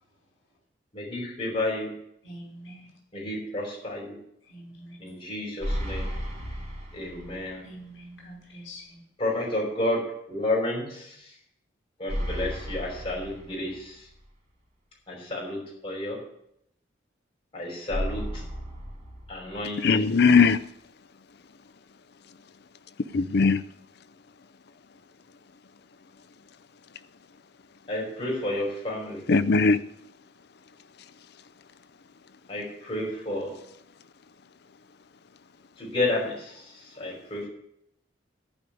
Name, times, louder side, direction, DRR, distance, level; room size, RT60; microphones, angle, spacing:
voice 1, 0.9-1.9 3.1-4.1 5.0-6.1 6.9-7.6 9.2-10.0 10.3-11.3 12.0-14.0 15.1-15.6 15.8-16.2 17.5-18.4 19.3-20.0 27.9-29.2 32.5-33.5 35.8-37.5, left 1 dB, 30° left, -3 dB, 5.5 m, -31 dB
voice 2, 2.2-3.0 4.4-5.1 7.6-9.0, equal, 75° left, -1 dB, 5.3 m, -45 dB
sound 1, 5.6-7.6 8.0-8.1 12.1-14.1 17.9-19.9, equal, 35° right, 3.6 m, -34 dB
voice 3, 19.8-20.6 23.1-23.6 29.3-29.8, left 4 dB, 55° left, 14 dB, 0.5 m, -19 dB
14.5 x 5.3 x 9.3 m, 0.75 s
head